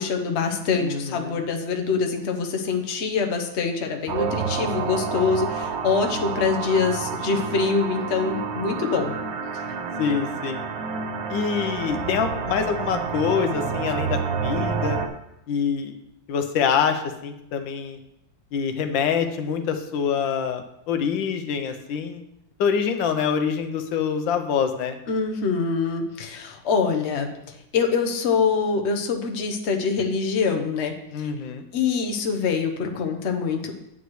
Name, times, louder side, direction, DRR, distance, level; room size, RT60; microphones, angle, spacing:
voice 1, 0.0-9.1 25.1-31.3 31.7-33.7, left 5 dB, 45° left, 4 dB, 1.0 m, -25 dB
voice 2, 0.8-1.4 10.0-10.6 11.3-15.0 15.5-16.0 16.3-18.0 18.5-22.2 22.6-25.0 31.1-31.7, left 7 dB, 85° left, 7 dB, 1.5 m, -25 dB
sound 1, 4.1-15.1, right 5 dB, 60° right, 1.1 m, -29 dB
9.7 x 7.9 x 3.2 m, 0.82 s
omnidirectional pair, 2.0 m